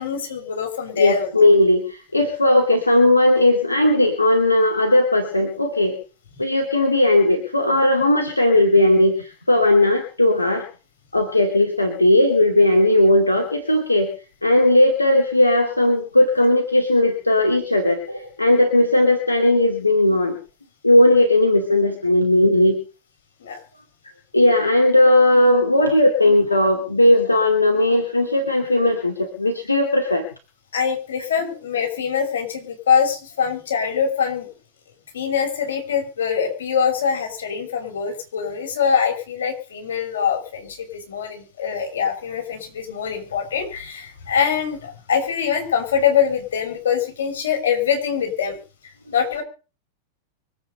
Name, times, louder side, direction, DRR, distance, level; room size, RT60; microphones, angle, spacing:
voice 1, 0.0-1.3 20.1-20.2 23.4-23.6 30.7-34.5 35.1-48.6 49.1-49.4, left 7 dB, 65° left, 3 dB, 5.9 m, -23 dB
voice 2, 1.0-5.9 6.4-10.6 11.1-14.1 14.4-20.4 20.8-22.8 24.3-30.2, left 1 dB, 85° left, 3 dB, 2.5 m, -17 dB
24.5 x 8.8 x 5.4 m, 0.37 s
figure-of-eight pair, 90°, 0 cm